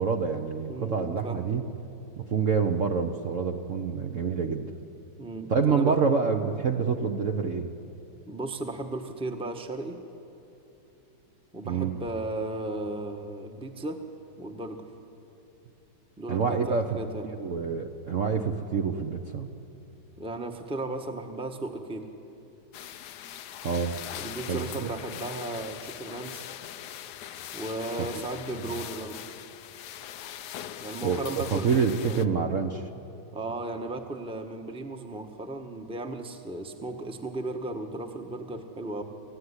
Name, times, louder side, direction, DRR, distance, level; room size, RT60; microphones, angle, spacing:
voice 1, 0.0-1.6 2.2-4.7 5.5-7.7 11.6-11.9 16.3-17.0 17.3-19.5 23.6-23.9 24.5-24.9 28.0-28.2 31.0-32.8, right 5 dB, 50° right, 3 dB, 1.1 m, -27 dB
voice 2, 0.7-1.4 5.2-6.0 8.3-10.0 11.5-14.0 14.4-14.9 16.2-17.2 20.2-22.1 24.1-26.5 27.5-29.2 30.8-32.5 33.3-39.0, right 2 dB, 5° right, 4 dB, 1.0 m, -35 dB
sound 1, 22.7-32.3, left 11 dB, 70° left, 1.2 m, -41 dB
29.0 x 15.0 x 9.9 m, 2.9 s
omnidirectional pair, 2.1 m